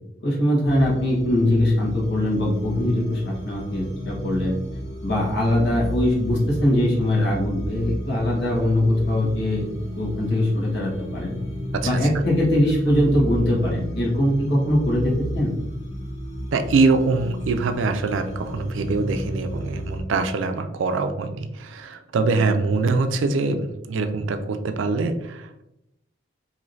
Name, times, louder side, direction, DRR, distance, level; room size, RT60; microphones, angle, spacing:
voice 1, 0.2-4.6 5.0-9.6 10.0-11.4 11.8-15.5, left 1 dB, 60° left, -4 dB, 1.2 m, -21 dB
sound 1, 0.6-20.0, equal, 35° left, 1.1 m, -33 dB
voice 2, 11.7-12.2 16.5-25.6, right 3 dB, 85° right, 8 dB, 0.4 m, -23 dB
3.1 x 2.7 x 2.6 m, 0.85 s
head